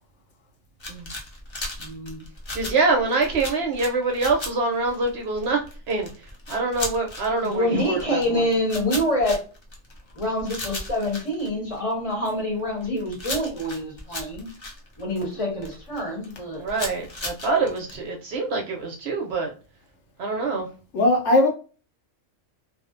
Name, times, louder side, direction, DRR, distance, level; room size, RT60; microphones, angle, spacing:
sound 1, 0.8-12.1 12.6-16.0 16.2-17.9, left 2 dB, 50° left, 0.3 m, -35 dB
voice 1, 1.8-2.2 7.4-9.4 10.1-14.5 15.0-16.6, left 1 dB, 30° left, -1 dB, 0.9 m, -26 dB
voice 2, 2.5-5.6 5.9-8.5 16.5-19.5 20.2-20.7, right 3 dB, 65° right, 1 dB, 0.7 m, -25 dB
voice 3, 20.9-21.5, left 1 dB, 65° left, 1 dB, 0.9 m, -18 dB
2.5 x 2.1 x 2.4 m, 0.36 s
omnidirectional pair, 1.3 m